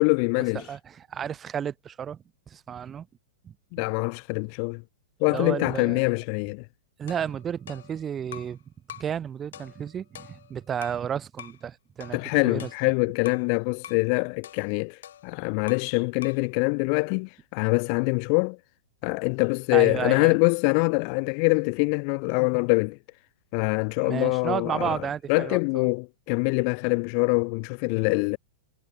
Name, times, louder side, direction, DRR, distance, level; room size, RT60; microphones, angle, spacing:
voice 1, 0.0-0.6 3.7-4.8 5.2-6.6 12.1-18.6 19.0-23.0 23.5-25.0 25.3-28.4, left 40 dB or more, 45° left, 0.4 m, -24 dB
voice 2, 0.6-3.1 3.4-3.5 5.3-6.0 7.0-8.6 8.9-12.7 19.7-20.4 24.0-25.9, right 8 dB, 20° right, 1.0 m, -32 dB
sound 1, 7.1-8.6 8.9-9.2 9.5-11.1 11.4-11.6 12.0-13.5 13.8-14.1 14.4-16.0 16.2-16.5, left 10 dB, 60° left, 4.2 m, -46 dB
figure-of-eight pair, 105°, 0 cm